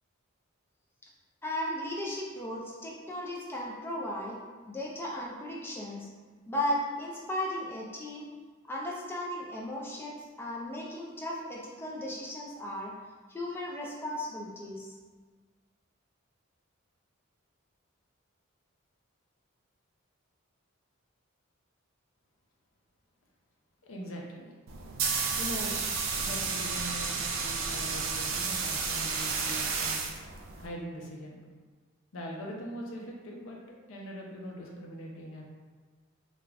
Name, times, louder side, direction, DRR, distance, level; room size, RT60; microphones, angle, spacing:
voice 1, 1.4-4.4 4.7-6.1 6.5-8.3 8.7-12.9 13.3-15.0, left 1 dB, 10° left, -3 dB, 0.4 m, -36 dB
voice 2, 23.8-24.5 25.4-25.9 26.2-30.0 30.6-31.4 32.1-35.5, equal, 70° left, -1 dB, 0.5 m, -41 dB
sound 1, 24.7-30.7, right 5 dB, 65° right, 0.4 m, -32 dB
2.4 x 2.2 x 3.2 m, 1.4 s
head